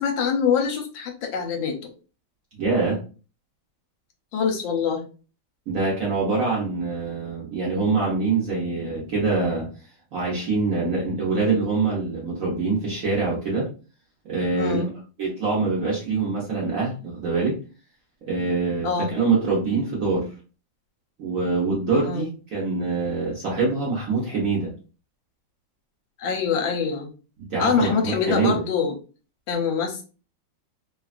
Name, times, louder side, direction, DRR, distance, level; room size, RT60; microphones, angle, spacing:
voice 1, 0.0-1.9 4.3-5.1 14.5-14.9 18.8-19.1 21.9-22.3 26.2-27.1 27.6-28.9 29.5-30.0, left 6 dB, 80° left, 3 dB, 1.3 m, -24 dB
voice 2, 2.6-3.0 5.7-9.7 10.1-13.7 14.2-14.8 15.2-17.6 18.3-20.3 21.2-24.7 27.5-28.6, right 4 dB, 55° right, -4 dB, 1.0 m, -24 dB
3.2 x 2.3 x 2.4 m, 0.35 s
omnidirectional pair, 2.2 m